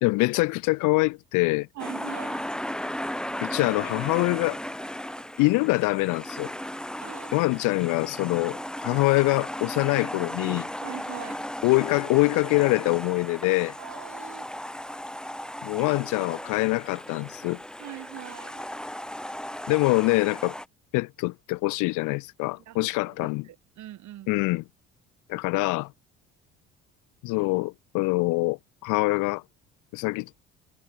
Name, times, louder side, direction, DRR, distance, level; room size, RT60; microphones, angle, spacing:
voice 1, 0.0-1.7 3.4-4.6 5.4-6.5 7.3-10.7 11.6-13.8 15.6-17.6 19.7-20.6 20.9-23.4 24.3-24.6 25.3-25.9 27.2-29.4 29.9-30.3, left 24 dB, 70° left, 0.5 m, -24 dB
voice 2, 1.7-2.4 7.0-7.3 10.8-11.4 13.8-14.5 17.8-18.6 22.7-24.3, right 13 dB, 65° right, 4.8 m, -42 dB
sound 1, 1.8-20.7, equal, ahead, 1.8 m, -36 dB
supercardioid pair, 70°, 32 cm